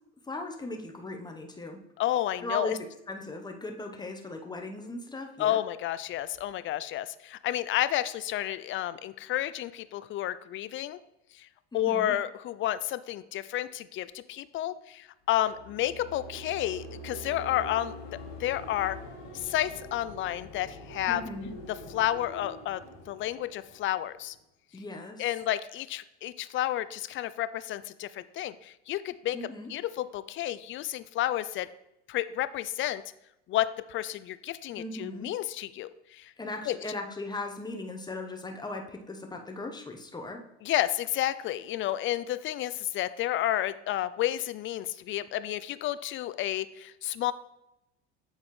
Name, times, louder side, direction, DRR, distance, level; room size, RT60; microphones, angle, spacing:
voice 1, 0.3-1.8 2.4-2.8 3.1-5.6 11.7-12.1 21.1-21.5 24.7-25.3 29.3-29.7 34.8-35.3 36.4-40.4, left 2 dB, 10° left, 3 dB, 1.0 m, -38 dB
voice 2, 2.0-2.7 5.4-11.0 11.4-11.5 11.7-17.9 18.4-19.0 19.3-21.2 21.9-22.8 23.1-24.4 25.2-29.4 29.7-31.7 32.1-33.0 33.5-36.3 36.7-36.8 40.6-47.3, left 13 dB, 40° left, 14 dB, 0.4 m, -31 dB
sound 1, 15.3-24.4, equal, 70° left, 2.4 m, -45 dB
8.0 x 4.0 x 3.2 m, 0.86 s
hypercardioid pair, 75°, 33 cm